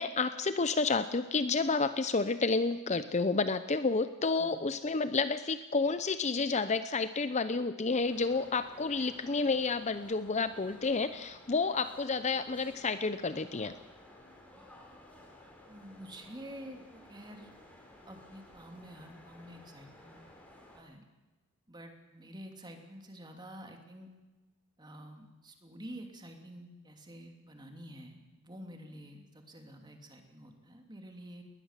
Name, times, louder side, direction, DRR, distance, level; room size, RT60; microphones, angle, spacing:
voice 1, 0.0-13.7, left 4 dB, 30° left, 12 dB, 0.7 m, -30 dB
sound 1, 8.0-20.8, left 1 dB, 5° left, 4.2 m, -55 dB
voice 2, 15.7-17.8 18.1-20.2 20.7-21.0 21.7-24.1 24.8-31.4, equal, 20° right, 4 dB, 2.8 m, -49 dB
20.5 x 20.0 x 7.5 m, 1.2 s
head